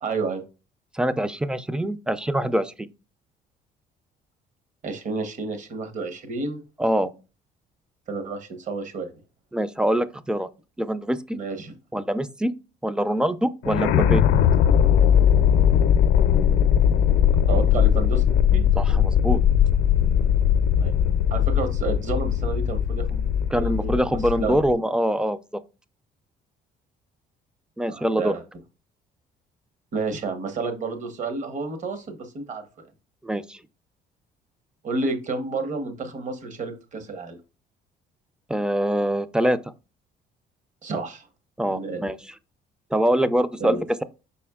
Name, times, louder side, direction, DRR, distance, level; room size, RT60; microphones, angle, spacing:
voice 1, 0.0-0.4 4.8-6.6 8.1-9.1 11.3-11.7 14.3-14.5 17.5-18.2 18.5-18.6 20.8-20.9 21.3-23.3 23.6-24.0 24.4-24.6 27.9-28.4 29.9-32.7 34.8-37.4 40.8-41.3 41.7-42.0 43.6-43.8, right 3 dB, 45° right, 1.1 m, -30 dB
voice 2, 0.9-2.7 6.8-7.1 9.5-10.5 10.8-11.4 11.9-12.5 12.8-14.2 18.7-19.4 23.5-25.4 27.8-28.3 33.2-33.6 38.5-39.6 41.6-42.2 42.9-44.0, right 1 dB, 5° right, 0.3 m, -24 dB
sound 1, 13.6-24.7, left 9 dB, 75° left, 0.5 m, -19 dB
5.3 x 4.2 x 2.3 m
cardioid pair, 110°, 17 cm